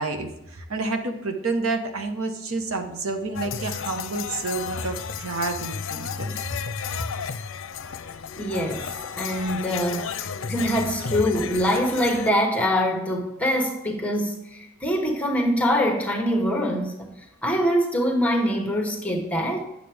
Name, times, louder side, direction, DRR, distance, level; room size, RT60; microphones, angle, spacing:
voice 1, 0.0-6.4 9.4-9.6 10.0-10.1, right 3 dB, 85° right, 1.1 m, -29 dB
sound 1, 3.3-12.3, left 6 dB, 65° left, 0.5 m, -33 dB
voice 2, 8.4-17.1 17.4-19.7, equal, 5° left, 1.0 m, -24 dB
9.7 x 6.7 x 3.5 m
head